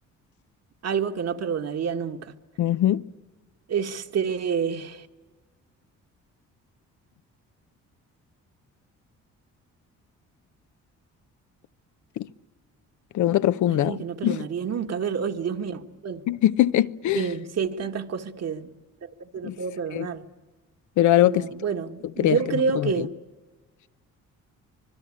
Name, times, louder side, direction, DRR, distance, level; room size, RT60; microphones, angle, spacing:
voice 1, 0.8-2.3 3.7-5.0 13.7-16.2 17.1-18.7 19.3-20.3 21.2-23.1, right 6 dB, 55° right, 1.7 m, -28 dB
voice 2, 2.6-3.1 12.2-12.3 13.1-14.0 14.2-14.5 16.3-17.3 19.4-19.6 19.9-20.1 21.0-21.5 22.2-23.1, left 13 dB, 75° left, 0.8 m, -22 dB
25.5 x 21.0 x 8.7 m
cardioid pair, 90°, 30 cm